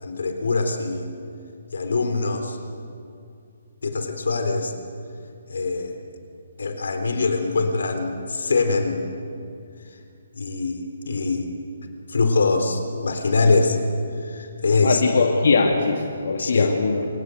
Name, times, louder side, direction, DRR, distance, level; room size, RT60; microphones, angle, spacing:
voice 1, 0.0-1.1 1.7-2.6 3.8-4.7 5.5-5.9 6.6-9.1 10.3-11.5 12.1-13.8 14.2-15.0 16.4-16.7, left 3 dB, 80° left, 6 dB, 3.7 m, -23 dB
voice 2, 14.8-17.1, left 4 dB, 60° left, 1 dB, 2.3 m, -21 dB
26.0 x 18.5 x 8.0 m, 2.5 s
hypercardioid pair, 175°, 0 cm